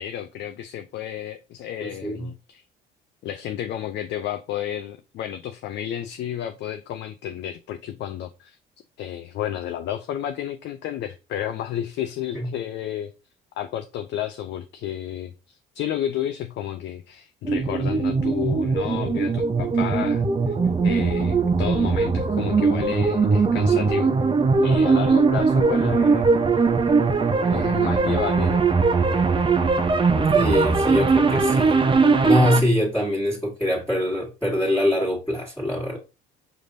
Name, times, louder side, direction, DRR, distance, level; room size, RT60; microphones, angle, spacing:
voice 1, 0.0-2.6 3.2-8.6 9.0-13.1 13.6-20.5 20.8-24.1 24.6-26.6 27.4-28.7, left 11 dB, 60° left, 0.5 m, -31 dB
voice 2, 1.8-2.3 12.3-12.5 30.3-31.8 32.2-36.0, left 1 dB, 10° left, 1.6 m, -24 dB
sound 1, 17.4-32.6, right 4 dB, 25° right, 0.7 m, -20 dB
4.9 x 3.3 x 2.6 m
hypercardioid pair, 65°, 21 cm